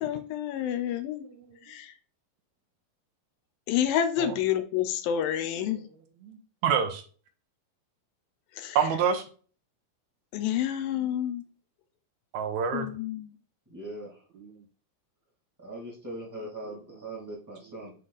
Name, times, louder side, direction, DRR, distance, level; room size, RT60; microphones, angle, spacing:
voice 1, 0.0-1.2 1.7-1.9 3.7-5.8 8.6-8.8 10.3-11.4 12.7-13.3, left 10 dB, 85° left, 2.4 m, -29 dB
voice 2, 6.6-7.0 8.8-9.2 12.3-12.9 14.4-14.5, right 7 dB, 75° right, 1.8 m, -27 dB
voice 3, 13.7-14.2 15.6-17.9, right 1 dB, 5° right, 1.8 m, -40 dB
7.7 x 3.3 x 4.0 m
omnidirectional pair, 4.1 m